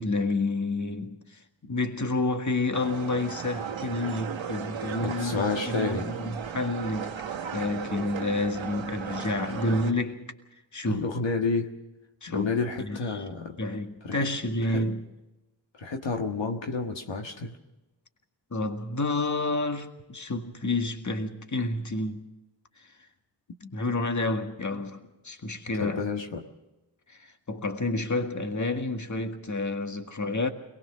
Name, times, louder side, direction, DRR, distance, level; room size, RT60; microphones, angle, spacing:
voice 1, 0.0-10.3 10.7-11.1 12.2-13.2 13.6-15.1 18.5-22.2 22.8-22.9 23.6-26.0 27.1-30.5, left 2 dB, 40° left, 1.9 m, -30 dB
sound 1, 2.7-9.9, right 7 dB, 85° right, 1.2 m, -36 dB
voice 2, 5.0-6.1 10.9-11.7 12.3-13.6 14.0-14.3 14.6-14.9 15.8-17.6 24.7-24.8 25.8-26.4, left 4 dB, 75° left, 1.7 m, -30 dB
22.5 x 20.0 x 6.2 m
cardioid pair, 45°, 45 cm